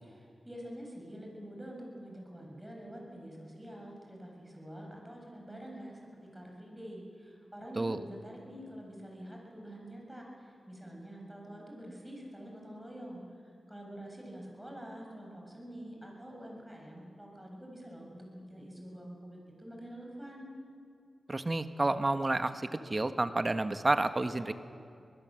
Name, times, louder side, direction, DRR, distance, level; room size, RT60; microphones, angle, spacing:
voice 1, 0.0-13.2 13.7-20.5, equal, 10° right, 0 dB, 7.6 m, -47 dB
voice 2, 21.3-24.5, right 2 dB, 30° right, 9 dB, 1.4 m, -30 dB
25.0 x 20.0 x 7.8 m, 2.4 s
cardioid pair, 60°, 0 cm